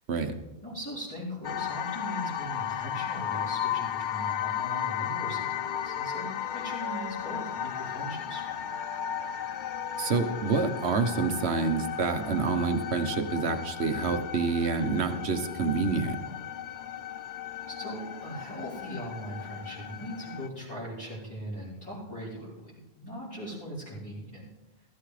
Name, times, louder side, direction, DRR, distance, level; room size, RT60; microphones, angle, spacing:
voice 1, 0.6-8.7 17.2-24.4, equal, 20° left, -11 dB, 4.1 m, -40 dB
sound 1, 1.4-20.5, left 9 dB, 55° left, 0.6 m, -35 dB
Wind instrument woodwind instrument, 4.9-12.1, right 1 dB, 5° right, 3.2 m, -50 dB
voice 2, 10.0-16.2, right 4 dB, 85° right, 7 dB, 1.3 m, -27 dB
16.0 x 14.0 x 3.3 m, 1.0 s
omnidirectional pair, 1.1 m